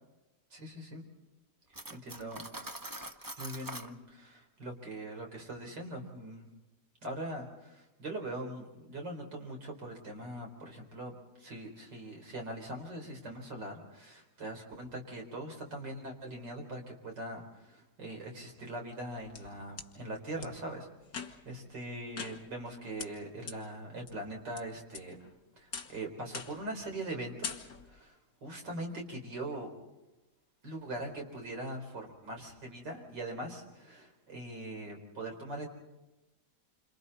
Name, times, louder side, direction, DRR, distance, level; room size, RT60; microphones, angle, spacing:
voice 1, 0.5-1.0 1.9-2.4 3.4-6.5 7.0-20.9 21.4-25.2 25.6-29.7 30.6-35.7, right 1 dB, 90° right, 2 dB, 4.9 m, -41 dB
Cutlery silverware, 1.7-3.9, right 1 dB, 20° right, 0.5 m, -43 dB
sound 1, 18.9-19.9 20.4-20.5 21.1-21.6 22.2-22.7 23.0-23.1 23.5-23.6 24.1-24.6 24.9-25.3 25.7-26.0 26.3-26.7 27.0-27.2 27.4-28.0, left 6 dB, 55° left, 2.0 m, -42 dB
28.5 x 27.0 x 4.2 m, 1.0 s
omnidirectional pair, 1.8 m